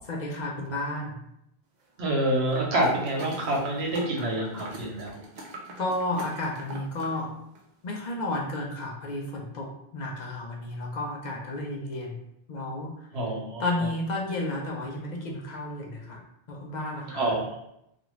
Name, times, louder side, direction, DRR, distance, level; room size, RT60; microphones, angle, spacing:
voice 1, 0.1-1.2 5.8-7.3 7.8-12.2 12.5-12.9 13.6-16.2 16.5-17.4, left 2 dB, 50° left, -2 dB, 0.6 m, -32 dB
voice 2, 2.0-5.2 13.1-13.9 17.1-17.6, right 1 dB, 85° right, -2 dB, 1.0 m, -27 dB
sound 1, 2.5-7.2 7.6-7.7, right 1 dB, 55° right, 0.6 m, -42 dB
2.5 x 2.5 x 3.0 m, 0.79 s
omnidirectional pair, 1.1 m